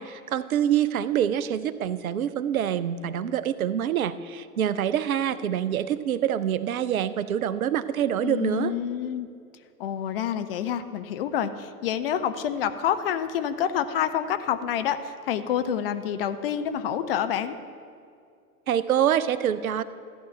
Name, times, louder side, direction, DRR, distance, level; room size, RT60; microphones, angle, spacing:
voice 1, 0.0-8.7 18.7-19.8, right 10 dB, 65° right, 15 dB, 0.6 m, -26 dB
voice 2, 8.2-9.3 9.8-17.6, left 9 dB, 40° left, 10 dB, 0.5 m, -28 dB
14.0 x 9.8 x 3.3 m, 2.3 s
figure-of-eight pair, 95°, 46 cm